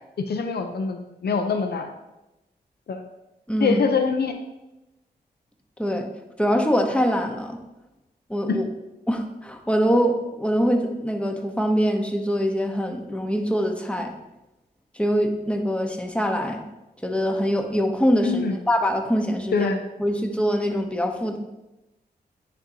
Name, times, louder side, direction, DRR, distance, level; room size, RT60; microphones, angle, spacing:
voice 1, 0.3-1.9 2.9-3.0 3.6-4.3 8.5-8.6 18.2-18.6 19.5-19.8, left 5 dB, 70° left, 6 dB, 0.6 m, -24 dB
voice 2, 3.5-3.8 5.8-6.1 6.4-7.6 8.3-8.7 9.1-14.1 15.0-16.6 17.0-19.7 20.0-21.4, equal, 5° left, 4 dB, 1.0 m, -23 dB
9.8 x 4.2 x 2.8 m, 0.97 s
cardioid pair, 55°, 17 cm